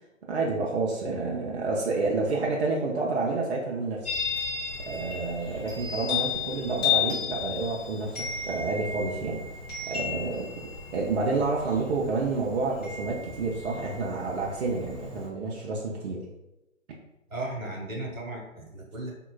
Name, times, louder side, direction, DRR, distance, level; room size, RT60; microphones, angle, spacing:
voice 1, 0.3-4.1 4.8-8.2 8.4-9.4 9.9-16.2, right 3 dB, 55° right, -2 dB, 0.5 m, -29 dB
Chime, 4.0-15.3, left 7 dB, 15° left, 1.1 m, -34 dB
voice 2, 17.3-19.1, right 2 dB, 80° right, -1 dB, 1.1 m, -35 dB
3.7 x 2.2 x 2.3 m, 0.96 s
figure-of-eight pair, 130°, 40 cm